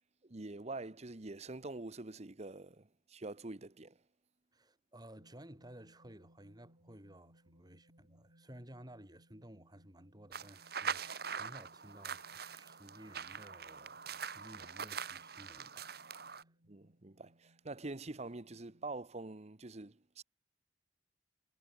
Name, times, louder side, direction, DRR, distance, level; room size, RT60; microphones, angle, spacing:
voice 1, 0.2-4.0 16.7-20.2, right 2 dB, 40° right, 1.1 m, -45 dB
voice 2, 4.5-16.6, right 1 dB, 25° right, 7.4 m, -56 dB
sound 1, 5.2-19.0, equal, 85° right, 6.4 m, -68 dB
sound 2, 10.3-16.4, right 6 dB, 65° right, 2.5 m, -43 dB
head